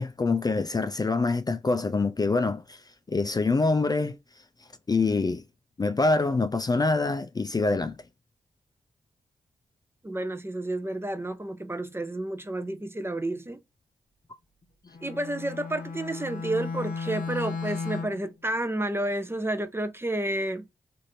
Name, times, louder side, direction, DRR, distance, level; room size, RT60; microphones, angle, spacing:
voice 1, 0.0-2.8 3.1-4.2 4.9-5.4 5.8-8.0, left 3 dB, 30° left, 0.4 m, -25 dB
voice 2, 10.0-13.6 15.0-20.7, right 1 dB, 15° right, 0.6 m, -30 dB
Bowed string instrument, 14.9-18.3, left 4 dB, 70° left, 0.7 m, -35 dB
3.1 x 2.6 x 2.7 m
supercardioid pair, 45°, 14 cm